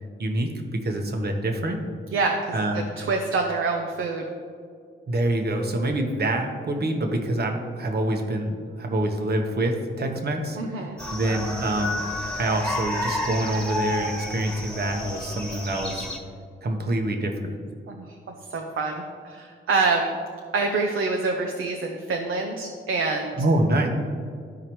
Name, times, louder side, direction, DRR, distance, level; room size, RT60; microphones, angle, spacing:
voice 1, 0.2-1.8 2.5-2.8 5.1-10.6 11.1-12.0 12.3-16.1 16.6-17.6 23.4-23.9, right 1 dB, 50° right, 3 dB, 1.1 m, -26 dB
voice 2, 2.1-4.2 10.6-11.0 17.9-18.2 18.5-20.1 20.5-23.4, right 3 dB, 75° right, 2 dB, 0.7 m, -26 dB
sound 1, 11.0-16.2, left 1 dB, 5° left, 1.6 m, -31 dB
13.0 x 4.8 x 3.0 m, 2.1 s
cardioid pair, 90°, 21 cm